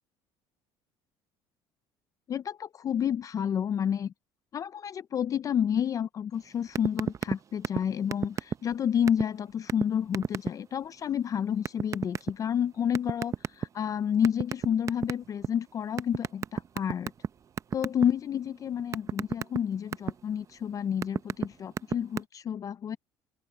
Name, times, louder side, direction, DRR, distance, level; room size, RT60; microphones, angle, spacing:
voice 1, 2.3-4.1 4.5-17.1 17.7-23.0, left 8 dB, 35° left, 0.4 m, -30 dB
sound 1, 6.7-7.3 7.6-7.8 8.1-8.7 9.1-9.2 9.7-9.8 10.1-10.5 11.6-12.3 12.9-13.8 14.2-15.5 16.0-17.3 17.6-18.0 18.4-20.1 20.7-21.5 21.7-22.2, right 7 dB, 30° right, 0.7 m, -29 dB
open air
cardioid pair, 135°, 10 cm